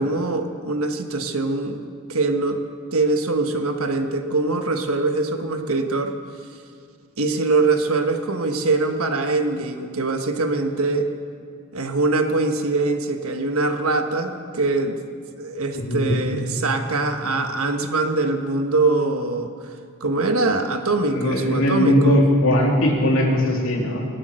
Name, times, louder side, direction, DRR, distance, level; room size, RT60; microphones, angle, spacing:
voice 1, 0.0-1.8 2.1-2.6 2.9-6.1 7.2-11.1 11.7-15.0 15.3-19.7 20.0-22.2, right 3 dB, 70° right, 6 dB, 1.4 m, -23 dB
voice 2, 15.7-16.1 21.1-24.1, left 1 dB, 65° left, -2 dB, 3.2 m, -19 dB
25.5 x 8.7 x 6.4 m, 2.2 s
head